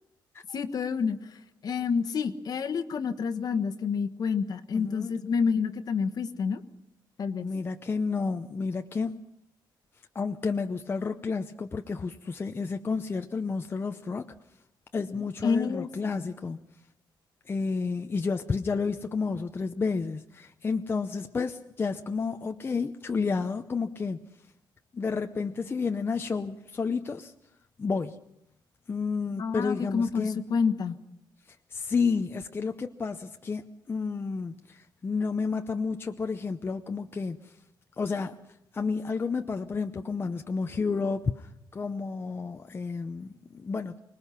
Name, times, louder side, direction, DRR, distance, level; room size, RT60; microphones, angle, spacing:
voice 1, 0.5-6.6 7.2-7.5 15.4-16.3 29.4-31.0, left 5 dB, 50° left, 9 dB, 1.2 m, -29 dB
voice 2, 4.7-5.1 7.4-9.2 10.1-14.3 14.9-16.6 17.5-24.2 24.9-27.3 27.8-28.2 28.9-30.4 31.7-37.5 38.0-38.3 38.7-44.0, left 4 dB, 25° left, 6 dB, 0.7 m, -31 dB
25.0 x 20.0 x 5.8 m, 0.81 s
cardioid pair, 135°, 8 cm